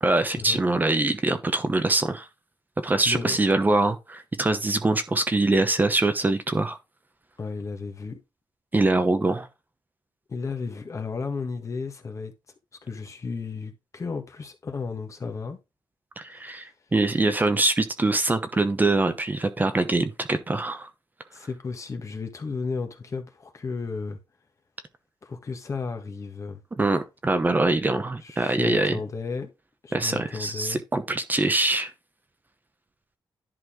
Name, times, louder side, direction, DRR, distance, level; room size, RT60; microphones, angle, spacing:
voice 1, 0.0-2.3 2.8-6.8 8.7-9.5 16.2-20.9 26.8-29.0 29.9-31.9, right 2 dB, 20° right, 0.9 m, -23 dB
voice 2, 3.1-3.4 7.4-8.2 10.3-12.3 12.8-15.6 21.3-24.2 25.2-26.6 27.6-27.7 28.2-29.5 29.8-30.8, left 4 dB, 40° left, 1.6 m, -33 dB
11.0 x 4.3 x 3.8 m
wide cardioid pair, 120°, 8 cm